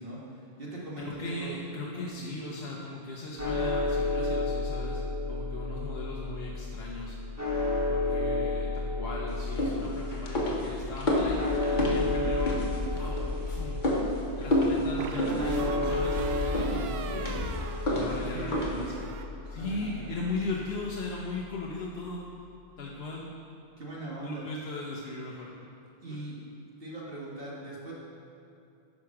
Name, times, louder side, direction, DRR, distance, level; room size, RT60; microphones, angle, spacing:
voice 1, 0.0-1.5 1.9-2.1 18.0-19.0 19.4-20.1 23.8-24.5 26.0-26.4 26.8-27.9, right 2 dB, 65° right, -5 dB, 1.7 m, -40 dB
voice 2, 1.0-5.0 5.3-7.2 7.8-11.4 11.7-13.8 14.4-18.9 19.5-22.2 22.8-23.3 24.2-25.5 26.1-26.2, left 2 dB, 80° left, -3 dB, 1.1 m, -38 dB
sound 1, 3.4-21.6, left 3 dB, 15° right, 1.3 m, -32 dB
sound 2, 9.3-19.0, left 1 dB, 50° left, 1.2 m, -31 dB
sound 3, 12.3-13.1 15.0-18.5 18.8-19.3, right 6 dB, 85° right, 0.8 m, -39 dB
9.6 x 5.0 x 5.8 m, 2.6 s
omnidirectional pair, 1.0 m